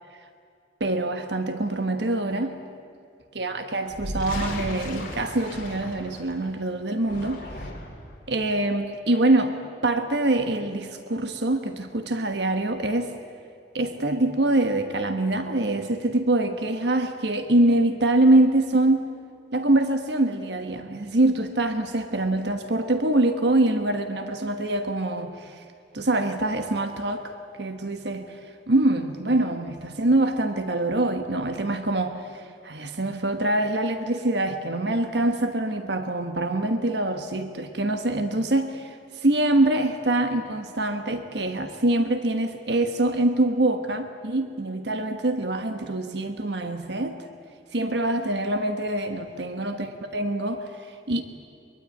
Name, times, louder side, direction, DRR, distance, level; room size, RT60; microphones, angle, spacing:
voice 1, 0.8-2.6 3.3-7.7 8.3-13.1 13.7-19.1 19.5-25.6 25.9-28.4 28.7-47.2 47.7-51.2, right 2 dB, 70° right, 7 dB, 1.3 m, -24 dB
sound 1, 3.9-6.4 6.9-8.1, left 1 dB, 50° left, 4.8 m, -35 dB
23.5 x 22.5 x 9.2 m, 2.3 s
head